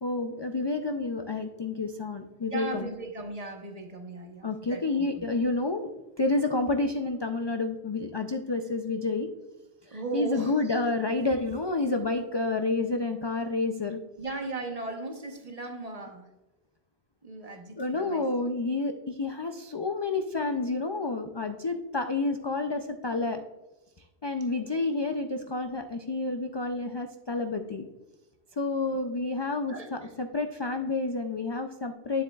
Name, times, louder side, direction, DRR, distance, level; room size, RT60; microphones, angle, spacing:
voice 1, 0.0-2.9 4.4-5.9 6.2-9.3 9.9-14.0 17.8-23.4 24.2-27.9 28.6-32.2, left 3 dB, 45° left, 6 dB, 0.3 m, -29 dB
voice 2, 2.4-5.2 9.9-10.6 14.2-16.3 17.2-18.3 24.5-25.0 29.7-29.9, right 3 dB, 35° right, 4 dB, 1.0 m, -37 dB
9.3 x 7.6 x 2.3 m, 1.1 s
omnidirectional pair, 1.1 m